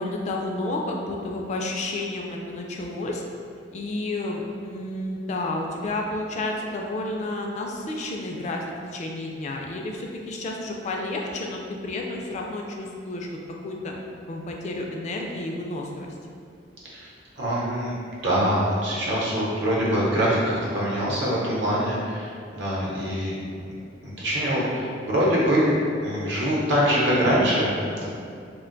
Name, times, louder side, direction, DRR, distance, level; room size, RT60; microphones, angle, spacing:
voice 1, 0.0-3.2 3.7-8.6 8.9-13.3 13.6-13.9 14.3-16.1 27.9-28.1, left 2 dB, 40° left, 0 dB, 0.3 m, -31 dB
voice 2, 17.4-17.9 18.2-23.4 24.0-27.7 28.0-28.1, equal, 70° right, -6 dB, 0.8 m, -24 dB
2.5 x 2.2 x 3.8 m, 2.3 s
head